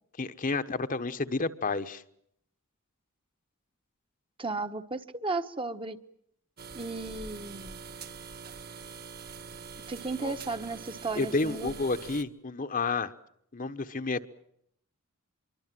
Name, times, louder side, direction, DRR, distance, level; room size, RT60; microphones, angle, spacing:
voice 1, 0.2-2.0 10.2-10.3 11.1-13.1 13.5-14.2, left 3 dB, 40° left, 9 dB, 1.2 m, -30 dB
voice 2, 4.4-6.0 6.7-7.8 9.9-11.8, right 3 dB, 25° right, 8 dB, 1.2 m, -34 dB
sound 1, 6.6-12.2, right 5 dB, 45° right, 1.6 m, -44 dB
25.5 x 23.5 x 7.7 m, 0.72 s
head